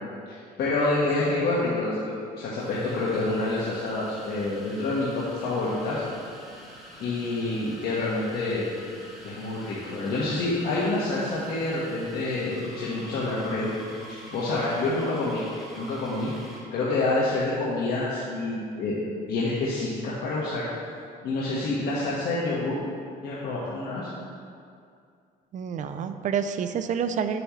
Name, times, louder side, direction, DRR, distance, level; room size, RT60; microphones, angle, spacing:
voice 1, 0.3-2.1 2.4-6.0 7.0-8.7 9.2-13.7 14.1-15.4 15.8-16.3 16.7-19.0 19.3-20.6 21.2-22.8 23.2-24.1, left 2 dB, 70° left, -7 dB, 1.6 m, -27 dB
sound 1, 2.5-16.7, equal, ahead, 2.2 m, -46 dB
voice 2, 25.5-27.4, right 7 dB, 50° right, 9 dB, 0.5 m, -28 dB
9.8 x 7.8 x 3.2 m, 2.3 s
cardioid pair, 110°, 17 cm